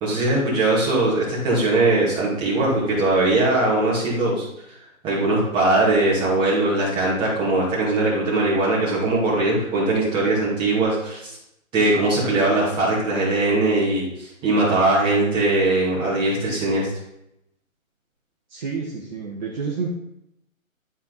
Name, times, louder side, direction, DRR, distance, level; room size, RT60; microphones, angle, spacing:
voice 1, 0.0-4.4 5.0-11.3 11.7-16.9, right 2 dB, 10° right, -7 dB, 2.6 m, -20 dB
voice 2, 18.5-19.9, right 5 dB, 35° right, -4 dB, 1.4 m, -29 dB
12.0 x 4.6 x 4.1 m, 0.80 s
hypercardioid pair, 155°, 41 cm